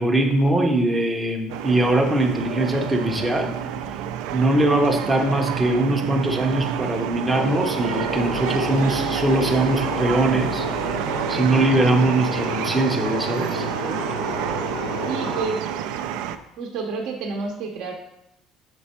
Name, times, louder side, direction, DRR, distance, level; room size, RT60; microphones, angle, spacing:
voice 1, 0.0-3.5 4.3-10.7 11.3-13.6, right 1 dB, 5° right, 1 dB, 0.6 m, -21 dB
sound 1, 1.5-16.4, right 9 dB, 80° right, 0.4 m, -28 dB
sound 2, 7.3-15.4, left 2 dB, 90° left, 1.3 m, -31 dB
voice 2, 15.0-15.7 16.6-17.9, right 4 dB, 60° right, 1 dB, 0.7 m, -29 dB
6.1 x 4.3 x 4.2 m, 0.83 s
cardioid pair, 160°, 0 cm